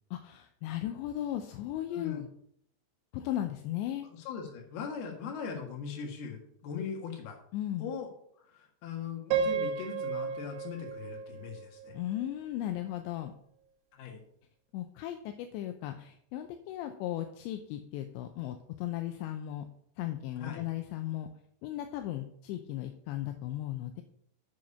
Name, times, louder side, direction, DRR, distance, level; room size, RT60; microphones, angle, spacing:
voice 1, 0.1-2.3 3.1-4.1 7.5-7.9 11.9-13.3 14.7-19.7 20.0-21.3 21.6-24.0, left 12 dB, 80° left, 6 dB, 2.7 m, -36 dB
voice 2, 1.9-2.3 4.1-7.4 7.8-11.9 13.9-14.2 20.4-20.6, left 6 dB, 65° left, 2 dB, 3.3 m, -40 dB
Piano, 9.3-12.3, right 6 dB, 75° right, 2.4 m, -33 dB
7.8 x 7.2 x 5.4 m, 0.67 s
omnidirectional pair, 5.4 m